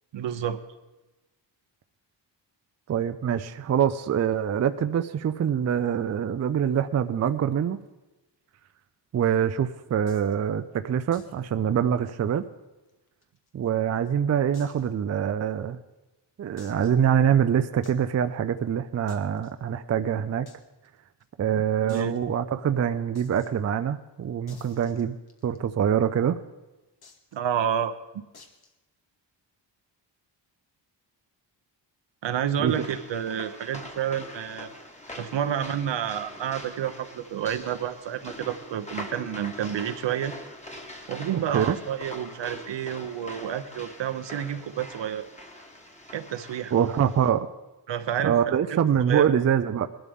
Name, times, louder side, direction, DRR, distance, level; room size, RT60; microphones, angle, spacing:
voice 1, 0.1-0.6 21.5-22.2 27.3-27.9 32.2-34.7 35.2-40.3 41.1-45.3 46.1-46.7 47.9-48.4 48.7-48.8 49.1-49.2, right 9 dB, 75° right, 10 dB, 0.9 m, -29 dB
voice 2, 2.9-7.8 9.1-12.5 13.5-15.8 16.4-20.5 21.4-25.2 25.4-26.4 32.6-32.8 41.5-41.8 46.7-47.5 48.2-49.9, right 8 dB, 40° right, 10 dB, 0.4 m, -24 dB
sound 1, 10.1-10.3 11.1-11.4 11.7-11.8 12.1-12.2 12.9-13.7 14.5-14.9 15.5-15.6 16.6-17.1 17.8-18.0 19.1-19.5 20.5-20.6 20.8-20.9 21.2-21.3 21.9-22.1 23.1-23.5 24.5-25.6 27.0-27.3 28.3-28.7, left 4 dB, 55° left, 1.5 m, -52 dB
sound 2, 32.7-47.3, left 1 dB, 15° left, 1.3 m, -43 dB
20.5 x 12.0 x 3.6 m, 1.1 s
wide cardioid pair, 160°, 44 cm